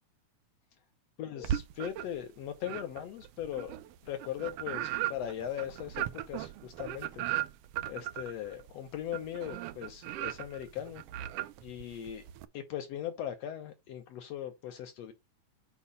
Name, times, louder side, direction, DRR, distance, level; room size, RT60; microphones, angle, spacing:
voice 1, 1.2-3.7 4.0-7.3 7.9-11.0 11.6-12.2 12.5-15.1, left 10 dB, 65° left, 1.9 m, -39 dB
sound 1, 1.4-2.3 2.6-12.5, right 13 dB, 85° right, 1.3 m, -37 dB
8.4 x 3.1 x 5.4 m
omnidirectional pair, 3.4 m